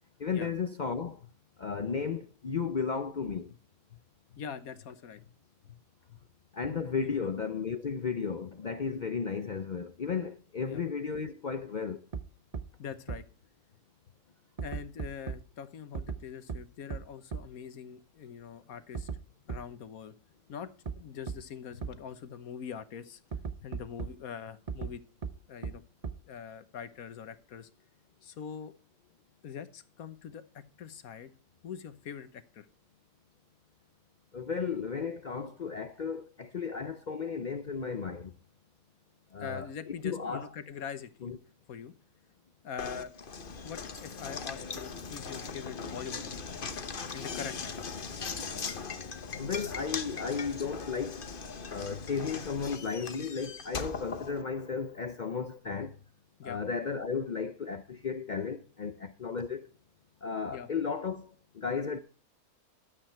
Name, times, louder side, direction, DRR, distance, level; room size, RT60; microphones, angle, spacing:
voice 1, 0.2-1.2 1.6-3.5 6.5-12.0 34.3-38.3 39.3-39.7 40.0-40.5 41.2-41.4 49.4-51.2 51.7-55.9 56.4-59.7 60.2-62.0, left 5 dB, 80° left, 0.4 m, -34 dB
voice 2, 4.3-5.3 5.6-5.8 6.1-6.2 6.6-6.7 7.0-7.3 10.6-10.8 12.8-13.2 14.6-19.1 19.5-20.1 20.5-23.2 23.6-25.0 25.5-25.8 26.2-27.7 28.2-28.7 29.4-31.3 31.6-32.7 39.4-41.3 41.7-41.9 42.6-43.1 43.6-46.5 47.1-47.8 56.4-56.6 60.5-60.7, left 7 dB, 65° left, 1.4 m, -43 dB
sound 1, 12.1-12.2 12.5-12.6 13.1-13.2 14.6-15.4 15.9-16.2 16.5-16.6 16.9-17.0 17.3-17.4 18.9-19.2 19.5-19.6 20.9-21.0 21.3-21.4 21.8-21.9 23.3-24.1 24.7-24.9 25.2-25.3 25.6-25.7 26.0-26.1, right 5 dB, 35° right, 0.6 m, -35 dB
Knock, 42.8-54.9, left 5 dB, 35° left, 1.1 m, -39 dB
12.5 x 8.2 x 4.5 m
omnidirectional pair, 1.7 m